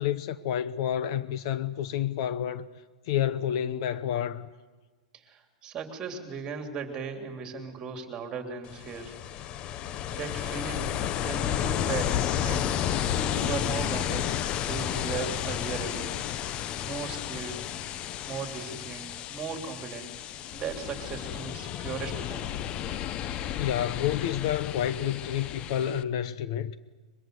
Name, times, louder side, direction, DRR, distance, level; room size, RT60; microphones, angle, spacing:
voice 1, 0.0-2.7 3.1-4.5 23.6-26.7, left 10 dB, 50° left, 1.0 m, -29 dB
voice 2, 5.2-9.1 10.1-14.3 14.7-16.1 16.4-16.6 16.8-17.7 18.3-20.1 20.5-22.5, right 5 dB, 20° right, 3.3 m, -37 dB
Ocean, 8.6-26.0, left 10 dB, 25° left, 0.7 m, -32 dB
23.0 x 23.0 x 7.9 m
supercardioid pair, 155°, 4 cm